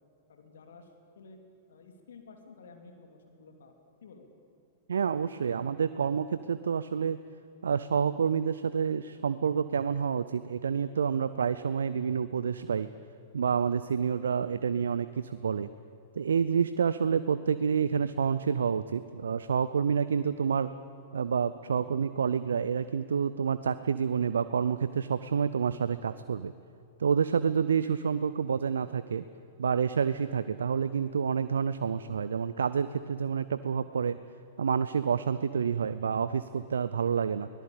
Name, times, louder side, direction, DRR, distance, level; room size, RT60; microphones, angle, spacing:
voice 1, 0.3-1.4 1.7-3.7 4.0-4.3, left 4 dB, 65° left, 4 dB, 2.7 m, -52 dB
voice 2, 4.9-7.2 7.6-12.9 13.3-15.7 16.1-20.7 21.1-26.5 27.0-29.2 29.6-34.2 34.6-37.5, right 6 dB, 70° right, 14 dB, 0.6 m, -28 dB
23.5 x 18.0 x 8.7 m, 2.6 s
figure-of-eight pair, 100°, 0 cm